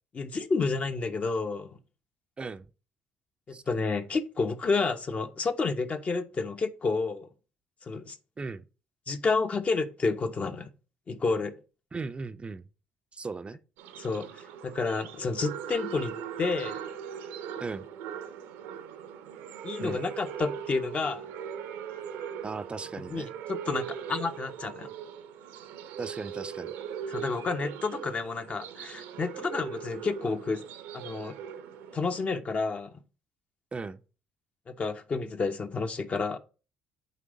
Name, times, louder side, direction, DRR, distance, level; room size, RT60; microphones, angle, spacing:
voice 1, 0.2-1.8 3.5-7.3 7.8-8.2 9.1-10.7 11.1-11.6 14.0-14.3 14.6-16.8 19.6-21.2 23.1-24.9 27.1-30.6 30.9-31.3 31.9-32.9 34.7-36.4, left 4 dB, 35° left, 0.8 m, -30 dB
voice 2, 11.9-12.7 13.1-13.6 17.6-17.9 19.8-20.0 22.4-23.3 26.0-26.7 33.7-34.0, right 4 dB, 30° right, 0.5 m, -37 dB
sound 1, 13.8-32.4, right 8 dB, 75° right, 0.8 m, -40 dB
8.5 x 3.4 x 3.8 m
hypercardioid pair, 55°, 4 cm